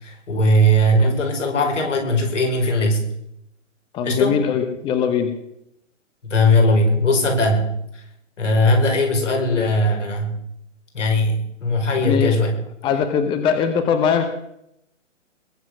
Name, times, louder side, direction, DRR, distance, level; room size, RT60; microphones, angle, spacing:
voice 1, 0.0-3.0 4.0-4.4 6.3-8.0 8.4-10.4 10.9-12.5, left 1 dB, 70° left, 3 dB, 5.2 m, -19 dB
voice 2, 3.9-5.3 12.0-12.3 12.8-14.3, left 7 dB, 15° left, 8 dB, 0.9 m, -21 dB
21.5 x 7.7 x 6.3 m, 0.77 s
figure-of-eight pair, 130°, 38 cm